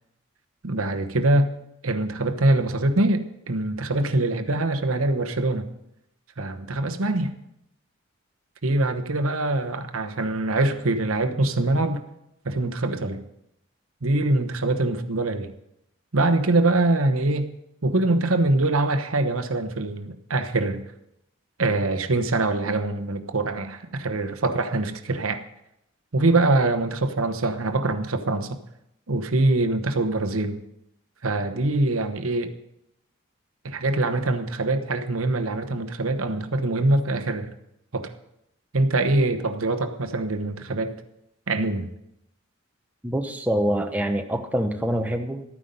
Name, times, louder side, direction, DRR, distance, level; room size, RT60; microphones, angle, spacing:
voice 1, 0.6-1.5 1.8-5.7 6.4-7.3 8.6-12.0 12.4-13.2 14.0-15.5 16.1-17.5 17.8-20.8 21.6-25.4 26.1-28.6 29.1-30.6 31.2-32.5 33.6-37.5 37.9-38.1 38.7-40.9 41.5-41.9, right 2 dB, 90° right, 1.0 m, -23 dB
voice 2, 43.0-45.4, equal, 5° right, 0.8 m, -25 dB
13.0 x 9.4 x 5.5 m
head